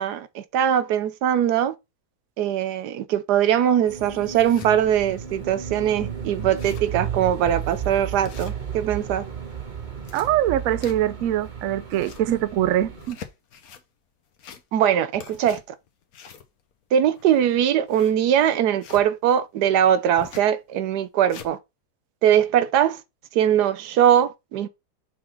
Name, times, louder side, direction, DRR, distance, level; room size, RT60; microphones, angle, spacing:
voice 1, 0.0-1.7 2.4-9.2 12.3-12.4 14.7-15.6 16.9-21.6 22.2-23.0 23.3-24.7, right 10 dB, 80° right, 1.3 m, -21 dB
sound 1, 3.4-3.5 4.0-4.7 5.3-5.4 5.6-5.7 6.1-6.2 6.4-7.0 7.4-7.6 8.2-9.0 9.8-11.3 11.7-12.3 12.9-13.8 14.3-14.9 15.1-19.1 20.2-20.5 21.0-21.5, left 8 dB, 65° left, 1.4 m, -44 dB
sound 2, 3.9-13.1, right 8 dB, 30° right, 1.2 m, -34 dB
voice 2, 10.1-13.2, right 12 dB, 65° right, 0.9 m, -23 dB
6.0 x 3.8 x 4.4 m
omnidirectional pair, 1.7 m